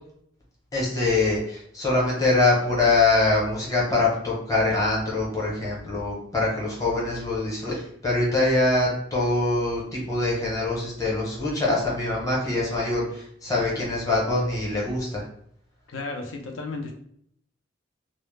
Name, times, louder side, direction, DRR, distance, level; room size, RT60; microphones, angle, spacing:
voice 1, 0.7-15.2, left 2 dB, 20° left, -4 dB, 0.7 m, -24 dB
voice 2, 15.9-16.9, left 3 dB, 85° left, 3 dB, 0.5 m, -33 dB
2.0 x 2.0 x 3.1 m, 0.69 s
head